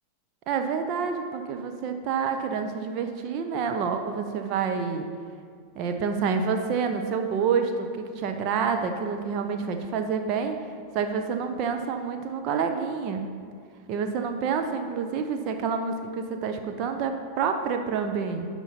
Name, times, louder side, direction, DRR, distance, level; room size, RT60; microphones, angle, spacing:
voice 1, 0.5-5.1 5.8-10.5 10.9-13.3 13.9-18.5, right 6 dB, 40° right, 5 dB, 0.7 m, -28 dB
11.0 x 4.5 x 5.6 m, 2.2 s
figure-of-eight pair, 90°, 0 cm